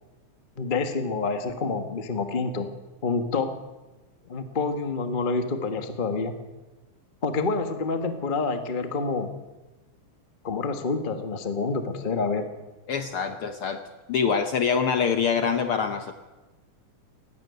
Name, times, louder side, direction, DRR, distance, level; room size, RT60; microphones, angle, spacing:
voice 1, 0.6-2.7 3.0-3.5 4.3-6.3 7.2-9.3 10.4-12.4, left 4 dB, 40° left, 7 dB, 0.6 m, -27 dB
voice 2, 12.9-13.8 14.1-16.1, left 6 dB, 65° left, 7 dB, 1.4 m, -25 dB
18.0 x 16.0 x 9.5 m, 1.2 s
omnidirectional pair, 3.6 m